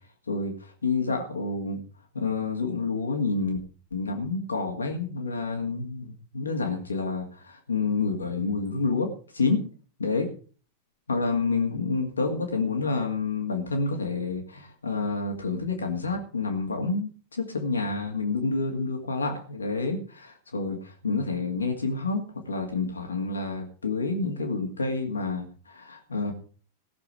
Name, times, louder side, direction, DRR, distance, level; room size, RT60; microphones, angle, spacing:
voice 1, 0.3-1.8 2.1-3.6 3.9-9.6 10.0-10.3 11.1-22.2 22.5-26.3, left 3 dB, 75° left, 2 dB, 2.3 m, -28 dB
17.5 x 6.9 x 6.3 m, 0.40 s
figure-of-eight pair, 90°, 0 cm